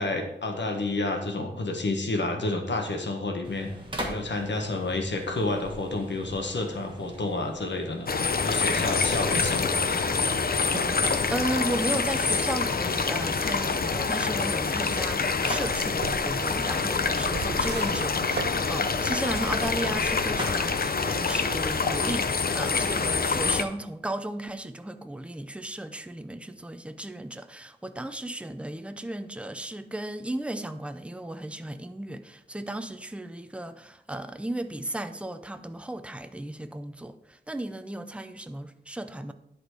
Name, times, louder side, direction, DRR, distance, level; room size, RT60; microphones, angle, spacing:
voice 1, 0.0-3.7 4.0-8.1 8.4-10.3, left 2 dB, 80° left, 1.3 m, -30 dB
sound 1, 3.4-23.0, right 1 dB, 25° right, 1.4 m, -43 dB
sound 2, 8.1-23.6, left 4 dB, 55° left, 0.6 m, -26 dB
voice 2, 11.0-39.3, right 1 dB, 5° right, 0.5 m, -35 dB
sound 3, 15.7-20.8, right 6 dB, 65° right, 0.5 m, -40 dB
11.0 x 4.2 x 4.8 m
wide cardioid pair, 85°, 18 cm